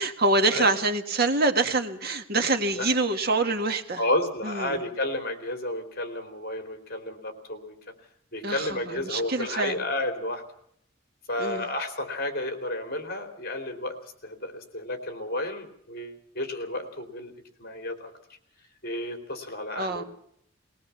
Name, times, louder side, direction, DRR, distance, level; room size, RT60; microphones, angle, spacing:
voice 1, 0.0-4.0 4.4-4.8 8.4-9.8 11.4-11.6 19.8-20.0, right 2 dB, 50° right, 6 dB, 1.8 m, -25 dB
voice 2, 4.0-7.9 8.3-10.4 11.3-13.9 14.2-17.3 17.6-18.1 18.8-20.0, left 1 dB, 50° left, 7 dB, 3.4 m, -31 dB
20.5 x 19.5 x 7.1 m, 0.70 s
head